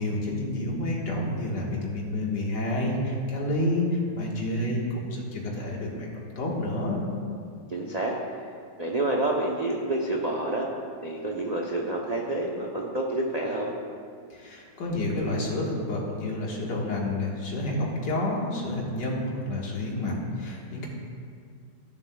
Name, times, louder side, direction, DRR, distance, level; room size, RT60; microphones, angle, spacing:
voice 1, 0.0-6.1 6.4-7.0 14.3-20.9, left 1 dB, 75° left, -3 dB, 2.2 m, -29 dB
voice 2, 7.7-8.1 8.8-10.7 11.0-13.7, right 2 dB, 60° right, -1 dB, 0.4 m, -28 dB
15.5 x 7.4 x 2.3 m, 2.2 s
omnidirectional pair, 1.9 m